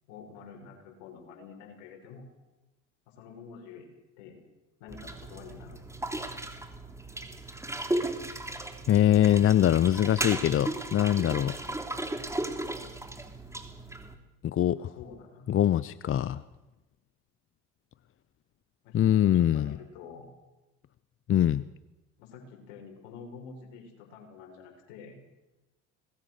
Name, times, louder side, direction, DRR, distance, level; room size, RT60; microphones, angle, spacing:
voice 1, 0.1-2.3 3.1-4.4 4.8-5.8 14.7-15.4 18.8-20.3 22.2-25.2, left 6 dB, 75° left, 2 dB, 6.7 m, -48 dB
sound 1, 4.9-14.1, right 1 dB, 10° right, 3.3 m, -36 dB
voice 2, 8.9-11.6 14.4-14.9 15.5-16.4 18.9-19.8 21.3-21.7, left 11 dB, 35° left, 17 dB, 0.8 m, -23 dB
25.5 x 20.5 x 6.7 m, 1.0 s
hypercardioid pair, 70°, 36 cm